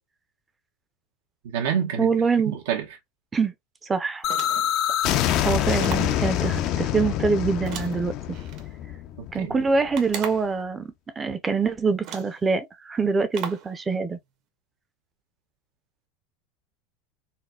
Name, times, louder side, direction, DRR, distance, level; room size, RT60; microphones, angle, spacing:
voice 1, 1.4-2.1 2.5-2.8 9.2-9.6, right 8 dB, 85° right, 1.0 m, -27 dB
voice 2, 2.0-2.6 3.3-3.5 3.8-4.3 5.2-8.4 9.3-14.2, right 4 dB, 15° right, 0.6 m, -25 dB
sound 1, 4.2-10.0, left 11 dB, 45° left, 0.5 m, -26 dB
sound 2, 4.2-4.8 5.8-6.2 7.7-8.6 9.9-10.6 11.5-11.6 12.0-12.4 13.3-13.7, right 8 dB, 50° right, 0.9 m, -37 dB
4.1 x 2.2 x 2.3 m
supercardioid pair, 145°, 0 cm